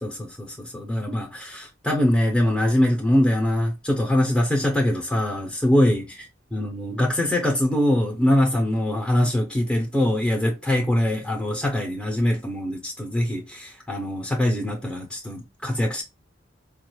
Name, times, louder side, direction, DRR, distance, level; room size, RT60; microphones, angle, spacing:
voice 1, 0.0-6.0 6.5-16.0, left 1 dB, 5° left, 0.6 m, -23 dB
4.7 x 2.3 x 3.0 m
head